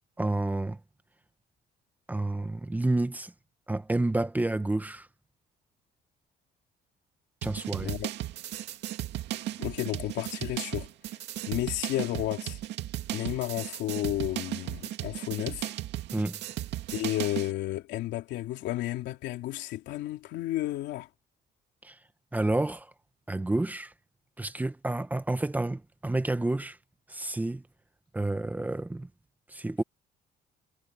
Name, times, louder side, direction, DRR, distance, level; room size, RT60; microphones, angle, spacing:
voice 1, 0.2-0.8 2.1-3.3 3.7-5.1 7.4-7.9 16.1-16.4 21.8-22.0 22.3-22.9 23.3-23.9 24.4-26.8 27.1-27.6 28.1-29.1 29.5-29.8, right 2 dB, 10° right, 1.1 m, -29 dB
sound 1, 7.4-17.5, right 14 dB, 75° right, 2.2 m, -36 dB
voice 2, 7.8-8.1 9.6-10.9 11.5-12.6 13.1-15.7 16.9-21.1, left 15 dB, 85° left, 3.2 m, -32 dB
cardioid pair, 135°, 18 cm